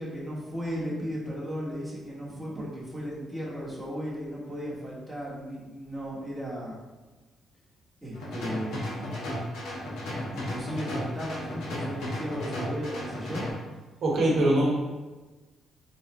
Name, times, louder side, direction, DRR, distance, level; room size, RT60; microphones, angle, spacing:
voice 1, 0.0-6.8 8.0-9.2 10.3-13.4, equal, ahead, -7 dB, 1.2 m, -35 dB
sound 1, 8.1-13.5, left 1 dB, 85° left, 1.0 m, -34 dB
voice 2, 14.0-14.7, right 1 dB, 60° right, -4 dB, 0.9 m, -22 dB
3.2 x 2.4 x 4.0 m, 1.2 s
cardioid pair, 90°, 0 cm